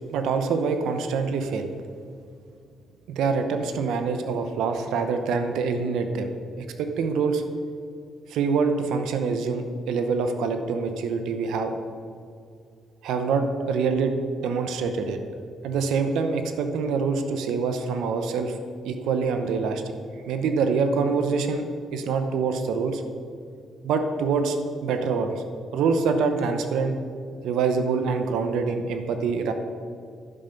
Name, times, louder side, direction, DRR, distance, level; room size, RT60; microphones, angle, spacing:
voice 1, 0.1-1.7 3.1-6.3 6.6-7.4 8.3-11.7 13.0-15.2 15.6-18.6 18.8-19.8 20.3-21.7 21.9-23.0 23.8-24.6 24.8-25.4 25.7-27.0 27.4-29.5, right 5 dB, 85° right, 7 dB, 0.7 m, -25 dB
11.0 x 5.2 x 5.7 m, 2.4 s
cardioid pair, 90°, 0 cm